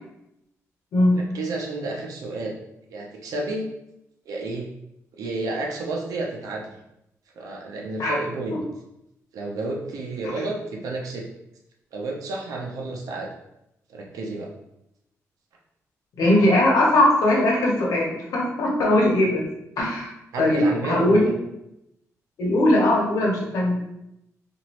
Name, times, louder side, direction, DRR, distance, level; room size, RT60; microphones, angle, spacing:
voice 1, 1.1-2.6 2.9-3.7 4.3-4.7 5.1-6.7 7.3-8.6 9.3-11.3 11.9-13.3 13.9-14.5 19.0-19.2 20.3-21.3, right 2 dB, 85° right, 0 dB, 0.7 m, -31 dB
voice 2, 16.2-19.4 19.8-20.1 20.4-20.6 20.8-21.3 22.4-23.8, left 1 dB, 85° left, -2 dB, 1.0 m, -19 dB
3.0 x 2.6 x 2.9 m, 0.83 s
cardioid pair, 105°, 6 cm